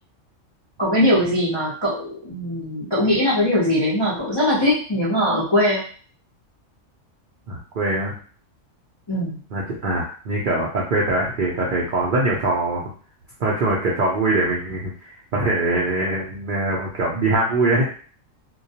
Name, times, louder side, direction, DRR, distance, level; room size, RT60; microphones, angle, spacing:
voice 1, 0.8-5.8 9.1-9.4, left 1 dB, 35° left, -8 dB, 0.4 m, -21 dB
voice 2, 7.5-8.1 9.5-12.8 13.4-17.9, right 2 dB, 60° right, -4 dB, 0.5 m, -22 dB
2.3 x 2.2 x 2.7 m, 0.43 s
omnidirectional pair, 1.4 m